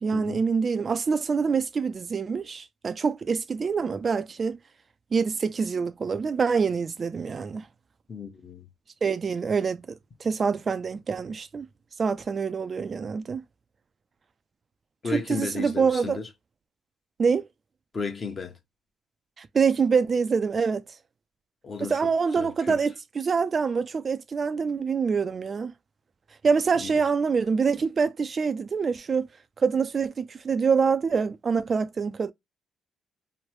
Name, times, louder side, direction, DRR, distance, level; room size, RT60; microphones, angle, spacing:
voice 1, 0.0-4.6 5.1-7.7 9.0-9.8 10.2-11.7 12.0-13.4 15.0-16.2 17.2-17.4 19.4-20.8 21.8-25.7 26.4-29.3 29.6-32.3, right 5 dB, 40° right, 0.3 m, -25 dB
voice 2, 8.1-8.7 15.0-16.3 17.9-18.5 21.6-21.9 22.4-22.8 26.8-26.9, left 4 dB, 40° left, 0.9 m, -34 dB
3.1 x 2.1 x 2.9 m
cardioid pair, 90°, 0 cm